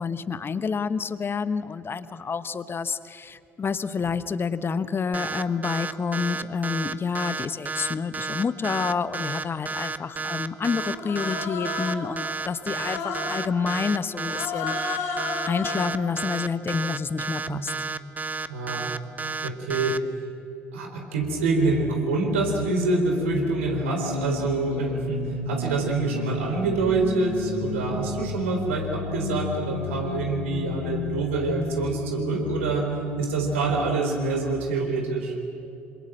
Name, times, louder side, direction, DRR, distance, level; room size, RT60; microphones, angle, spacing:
voice 1, 0.0-15.2 15.4-17.7, left 5 dB, 35° left, 14 dB, 1.2 m, -28 dB
sound 1, 5.1-20.0, right 4 dB, 25° right, 1.1 m, -31 dB
Human voice, 10.8-12.1 12.7-13.4 14.2-16.0, left 4 dB, 65° left, 6.1 m, -32 dB
voice 2, 18.4-18.9 19.4-20.0 20.7-35.4, right 3 dB, 75° right, 2 dB, 4.1 m, -26 dB
sound 2, 21.2-34.5, left 3 dB, 85° left, 2.0 m, -32 dB
27.0 x 26.5 x 7.6 m, 2.8 s
figure-of-eight pair, 50°, 7 cm